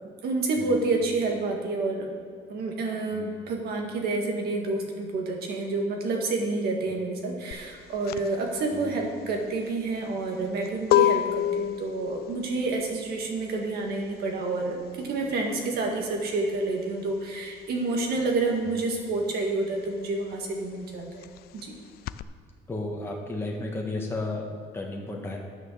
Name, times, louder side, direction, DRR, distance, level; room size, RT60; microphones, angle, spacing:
voice 1, 0.2-2.2 2.5-21.8, right 3 dB, 70° right, 1 dB, 2.0 m, -29 dB
voice 2, 3.1-3.4 8.7-8.9 22.7-25.4, left 2 dB, 15° left, -1 dB, 1.5 m, -33 dB
sound 1, 7.5-17.7 18.0-22.2, left 12 dB, 65° left, 0.4 m, -29 dB
9.5 x 6.4 x 6.5 m, 2.1 s
cardioid pair, 110°, 17 cm